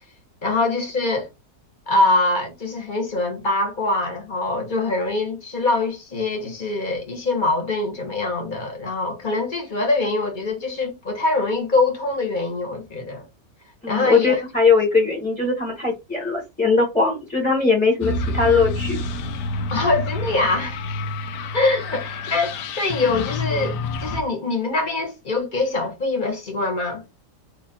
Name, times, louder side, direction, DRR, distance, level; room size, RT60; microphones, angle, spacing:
voice 1, 0.4-1.3 1.9-13.3 13.9-14.4 19.7-20.8 21.5-27.0, left 2 dB, 30° left, 1.1 m, -23 dB
voice 2, 13.8-19.0, left 4 dB, 5° left, 1.1 m, -20 dB
sound 1, 18.0-24.2, left 2 dB, 80° left, 1.2 m, -28 dB
3.1 x 2.8 x 3.9 m
omnidirectional pair, 1.8 m